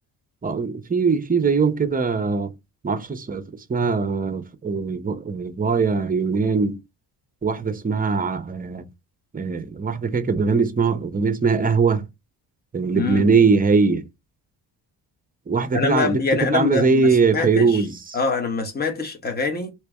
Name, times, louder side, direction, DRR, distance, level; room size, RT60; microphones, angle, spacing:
voice 1, 0.4-2.5 2.8-6.8 7.4-8.8 9.3-12.1 12.7-14.0 15.5-18.2, right 4 dB, 20° right, 0.6 m, -21 dB
voice 2, 12.9-13.3 15.7-17.8 18.1-19.7, left 4 dB, 20° left, 1.2 m, -25 dB
3.2 x 3.0 x 3.4 m
cardioid pair, 90°, 44 cm